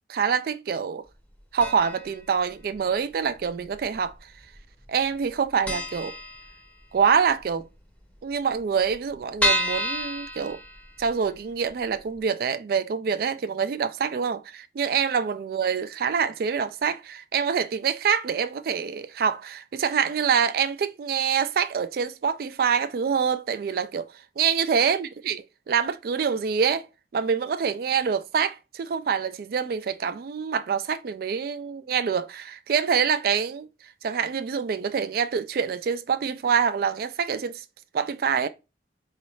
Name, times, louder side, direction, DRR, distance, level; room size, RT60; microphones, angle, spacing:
voice 1, 0.1-1.0 1.5-4.3 4.9-6.1 6.9-7.7 8.2-10.6 11.0-26.9 27.1-33.7 34.0-37.6 37.9-38.5, right 6 dB, 55° right, 0.3 m, -26 dB
sound 1, 1.6-2.1 2.4-2.5 3.4-4.1 4.4-4.6 4.9-5.0 5.3-5.4 5.7-7.0 7.4-7.5 7.7-7.8 8.0-8.1 8.6-11.2 11.7-11.8 12.2-12.3, equal, 10° left, 0.7 m, -29 dB
4.0 x 2.4 x 3.0 m
head